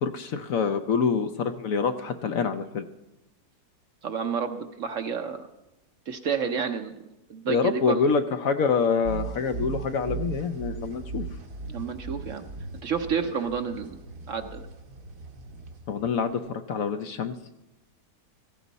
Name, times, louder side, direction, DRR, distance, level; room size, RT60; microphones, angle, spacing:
voice 1, 0.0-2.8 7.5-11.3 15.9-17.3, left 5 dB, 65° left, 8 dB, 1.0 m, -26 dB
voice 2, 4.0-5.5 6.1-7.0 7.3-8.0 11.7-12.4 12.8-14.0 14.3-14.7, right 6 dB, 60° right, 7 dB, 1.0 m, -30 dB
sound 1, 9.0-16.5, right 5 dB, 80° right, 1.9 m, -38 dB
16.5 x 15.0 x 4.1 m, 0.95 s
omnidirectional pair, 1.8 m